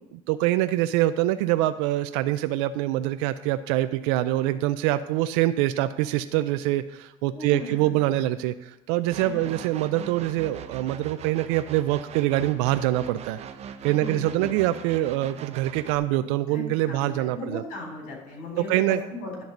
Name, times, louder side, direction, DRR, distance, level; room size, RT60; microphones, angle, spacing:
voice 1, 0.1-13.4 13.8-17.6 18.7-19.0, right 15 dB, 90° right, 11 dB, 0.4 m, -25 dB
voice 2, 7.3-7.7 9.2-9.5 13.9-14.5 16.5-19.4, left 2 dB, 65° left, 0 dB, 3.5 m, -37 dB
sound 1, 9.1-16.0, right 8 dB, 45° right, 0.7 m, -41 dB
10.5 x 3.9 x 7.1 m, 0.99 s
supercardioid pair, 105°, 15 cm